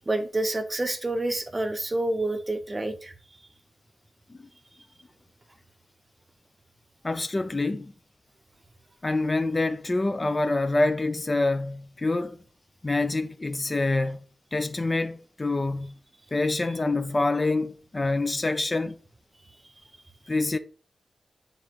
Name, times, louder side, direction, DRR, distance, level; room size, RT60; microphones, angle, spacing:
voice 1, 0.1-3.1, right 2 dB, 25° right, 0.7 m, -28 dB
voice 2, 7.0-7.9 9.0-12.4 12.8-14.2 14.5-15.9 16.3-19.0 20.3-20.6, left 2 dB, 30° left, 0.4 m, -26 dB
8.9 x 3.7 x 2.9 m
wide cardioid pair, 100°, 0 cm